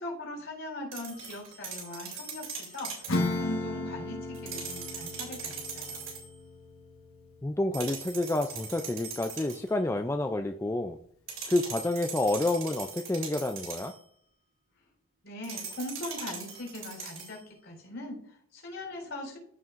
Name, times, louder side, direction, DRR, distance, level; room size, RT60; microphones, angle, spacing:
voice 1, 0.0-6.1 15.2-19.4, left 1 dB, 60° left, -1 dB, 3.9 m, -40 dB
sound 1, 0.9-3.2 4.3-6.3 7.7-9.7 11.3-14.0 15.4-17.4, right 5 dB, 65° right, 3.0 m, -40 dB
Acoustic guitar / Strum, 3.1-9.1, left 2 dB, 80° left, 1.4 m, -36 dB
voice 2, 7.4-11.0 11.5-13.9, left 2 dB, 10° left, 6 dB, 0.3 m, -29 dB
14.5 x 5.6 x 2.5 m, 0.64 s
head